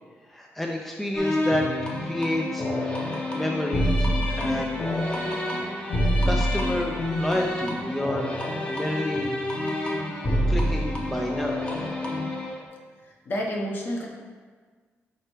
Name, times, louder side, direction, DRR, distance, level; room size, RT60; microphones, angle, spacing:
voice 1, 0.3-1.7 2.0-2.7 3.3-4.8 6.2-8.4 8.7-9.3 10.5-11.6, left 1 dB, 5° left, 1 dB, 0.3 m, -29 dB
sound 1, 1.1-12.6, left 1 dB, 25° left, 0.7 m, -27 dB
voice 2, 13.3-14.1, equal, 45° left, 0 dB, 0.9 m, -29 dB
4.9 x 4.4 x 4.3 m, 1.5 s
wide cardioid pair, 180°, 5 cm